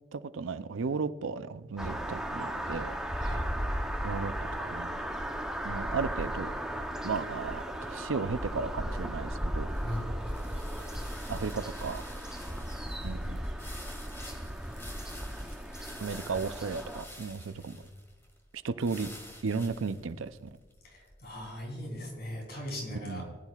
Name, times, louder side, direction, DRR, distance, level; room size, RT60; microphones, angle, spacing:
voice 1, 0.1-3.4 4.0-5.0 5.6-6.5 7.0-9.7 11.3-12.0 13.0-13.5 16.0-17.8 18.6-19.1 19.4-20.5 22.9-23.4, right 4 dB, 85° right, 13 dB, 0.5 m, -35 dB
sound 1, 1.8-17.0, equal, 5° right, 0.7 m, -36 dB
voice 2, 3.2-3.5 9.8-10.3 15.9-16.0 17.5-17.7 20.8-23.2, equal, 50° left, 0 dB, 3.4 m, -39 dB
sound 2, 9.7-22.0, left 1 dB, 15° left, 1.9 m, -50 dB
19.0 x 10.5 x 2.4 m, 1.3 s
head